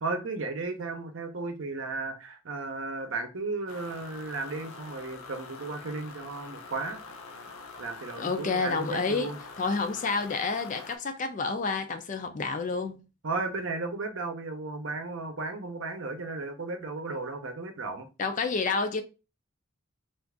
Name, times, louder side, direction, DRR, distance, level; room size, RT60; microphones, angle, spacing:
voice 1, 0.0-7.0 7.8-9.4 13.2-18.1, right 3 dB, 65° right, 0.7 m, -34 dB
sound 1, 3.7-11.0, left 4 dB, 85° left, 0.5 m, -45 dB
voice 2, 8.2-13.0 18.2-19.0, left 4 dB, 35° left, 0.4 m, -29 dB
2.5 x 2.4 x 3.4 m
head